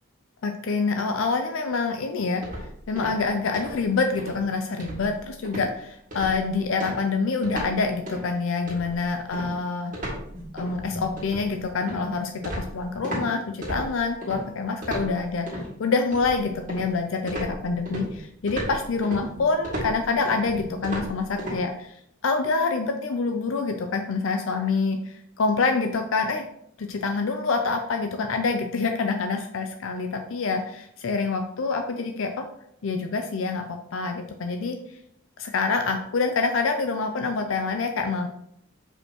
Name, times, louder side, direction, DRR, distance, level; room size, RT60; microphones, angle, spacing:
voice 1, 0.4-2.4 2.9-9.9 10.5-26.4 26.8-32.5 32.8-34.8 35.4-38.3, left 4 dB, 75° left, 5 dB, 0.5 m, -26 dB
sound 1, 2.4-3.3 3.5-3.8 4.2-4.4 4.8-5.2 5.4-5.7 6.1-6.4 6.8-7.8 8.1-8.3 8.7-13.3 13.6-14.4 14.8-15.7 16.1-16.9 17.3-21.6, equal, 40° right, 2.0 m, -34 dB
6.4 x 5.3 x 2.9 m, 0.73 s
head